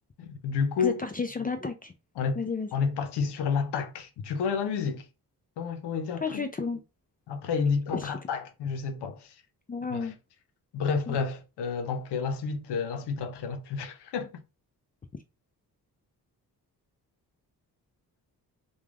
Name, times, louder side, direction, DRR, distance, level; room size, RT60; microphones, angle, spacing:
voice 1, 0.2-1.0 2.2-2.4 2.7-5.0 5.6-6.5 7.3-9.3 9.9-10.1 10.7-14.4, left 5 dB, 85° left, 0.6 m, -30 dB
voice 2, 0.8-1.9 2.4-2.7 6.2-6.8 7.9-8.1 9.7-10.1 11.1-11.2, left 4 dB, 25° left, 0.4 m, -32 dB
3.1 x 2.3 x 2.3 m
cardioid pair, 60°, 39 cm